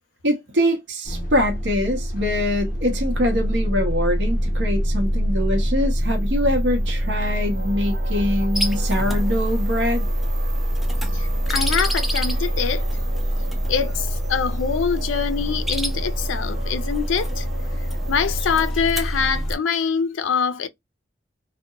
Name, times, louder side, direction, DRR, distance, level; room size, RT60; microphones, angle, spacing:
voice 1, 0.2-10.1, left 1 dB, 65° right, 0.7 m, -24 dB
sound 1, 1.0-19.5, equal, 45° left, 0.7 m, -24 dB
sound 2, 5.9-18.7, right 4 dB, 40° right, 1.0 m, -40 dB
sound 3, 8.5-19.6, equal, ahead, 0.4 m, -34 dB
voice 2, 11.1-12.9 13.7-17.4 18.1-20.7, left 6 dB, 85° left, 0.4 m, -24 dB
2.8 x 2.1 x 2.2 m
head